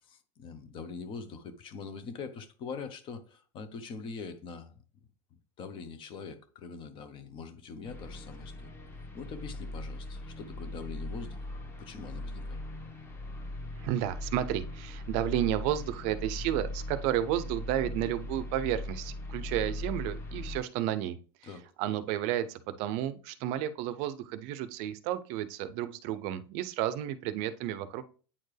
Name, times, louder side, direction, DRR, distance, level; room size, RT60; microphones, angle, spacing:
voice 1, 0.1-4.8 5.6-8.7 9.1-12.6 21.4-21.6, left 5 dB, 35° left, 1.0 m, -43 dB
sound 1, 7.8-20.6, left 1 dB, 15° left, 1.3 m, -39 dB
voice 2, 13.8-28.1, right 12 dB, 50° right, 0.6 m, -32 dB
8.7 x 4.4 x 3.3 m
supercardioid pair, 145°, 14 cm